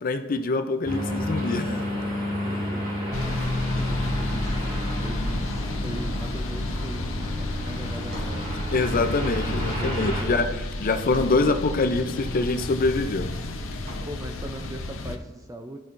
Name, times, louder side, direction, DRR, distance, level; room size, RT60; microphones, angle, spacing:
voice 1, 0.0-1.8 8.7-10.5 10.8-13.3, left 3 dB, 45° left, 8 dB, 0.5 m, -24 dB
sound 1, 0.9-10.2, equal, 45° right, 2.1 m, -32 dB
voice 2, 2.4-9.2 9.8-10.7 13.8-15.8, right 1 dB, 15° right, 5 dB, 0.4 m, -40 dB
sound 2, 3.1-15.2, left 2 dB, 80° left, 0.8 m, -30 dB
Drawer open or close, 7.7-9.5 10.3-11.6 12.0-12.9 13.2-14.3, right 1 dB, 75° right, 2.5 m, -46 dB
13.0 x 5.4 x 2.5 m, 1.1 s
head